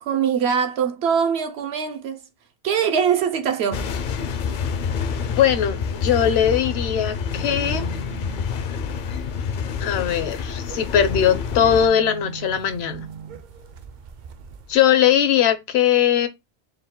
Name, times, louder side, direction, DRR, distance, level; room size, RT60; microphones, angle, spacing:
voice 1, 0.0-2.2 2.6-3.9, right 7 dB, 75° right, 0.9 m, -22 dB
sound 1, 3.7-11.9, left 6 dB, 60° left, 0.6 m, -28 dB
voice 2, 5.3-7.9 9.8-13.1 14.7-16.3, left 9 dB, 75° left, 0.9 m, -20 dB
sound 2, 7.2-14.8, right 5 dB, 60° right, 0.5 m, -40 dB
4.4 x 2.2 x 3.6 m
omnidirectional pair, 1.1 m